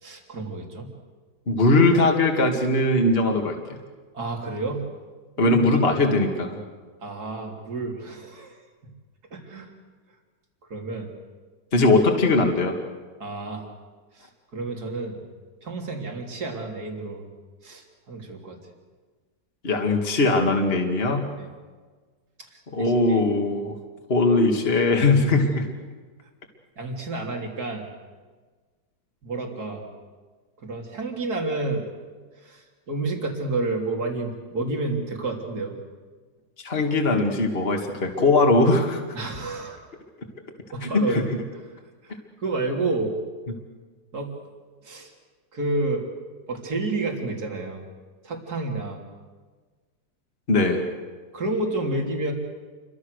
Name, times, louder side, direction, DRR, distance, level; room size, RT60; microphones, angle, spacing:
voice 1, 0.0-0.9 4.1-4.9 5.4-5.6 6.0-6.2 7.0-8.9 9.3-9.7 10.7-11.1 13.2-13.6 14.1-15.2 15.6-17.3 17.6-18.6 21.4-21.5 22.5-23.2 26.8-27.9 29.2-29.8 30.6-31.9 32.4-35.8 39.1-39.8 40.7-41.2 41.7-41.8 42.0-43.2 44.1-44.4 44.8-45.1 45.5-46.0 46.5-47.8 48.2-49.0 51.3-52.3, right 2 dB, 60° right, 1 dB, 3.7 m, -30 dB
voice 2, 1.5-3.8 5.4-6.6 11.7-12.7 19.6-21.3 22.7-23.7 24.1-25.7 36.6-39.0 40.8-41.2 50.5-50.9, left 2 dB, 35° left, 3 dB, 2.5 m, -20 dB
29.0 x 24.0 x 6.6 m, 1.4 s
omnidirectional pair, 1.9 m